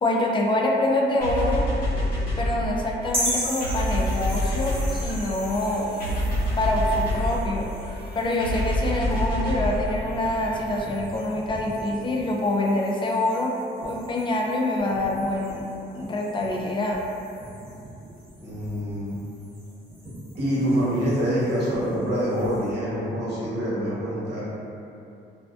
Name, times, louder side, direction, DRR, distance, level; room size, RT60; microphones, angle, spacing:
voice 1, 0.0-1.7 2.4-5.9 6.6-7.7 8.2-13.6 13.8-15.6 15.9-17.0, left 1 dB, 25° left, -1 dB, 0.3 m, -25 dB
sound 1, 1.2-10.8, left 1 dB, 45° left, 1.2 m, -28 dB
sound 2, 3.1-22.7, equal, 30° right, 0.9 m, -38 dB
voice 2, 18.4-19.2 20.3-24.4, equal, 55° right, -8 dB, 1.0 m, -26 dB
2.4 x 2.2 x 2.3 m, 2.7 s
cardioid pair, 90°, 20 cm